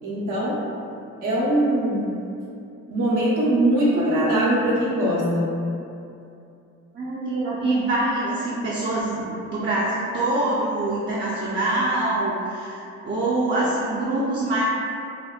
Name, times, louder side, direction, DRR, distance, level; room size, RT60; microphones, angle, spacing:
voice 1, 0.0-0.6 1.2-2.1 2.9-5.5, right 1 dB, 80° right, -7 dB, 0.8 m, -21 dB
voice 2, 6.9-14.6, right 2 dB, 40° right, -7 dB, 0.5 m, -24 dB
2.6 x 2.1 x 2.3 m, 2.6 s
supercardioid pair, 55°, 31 cm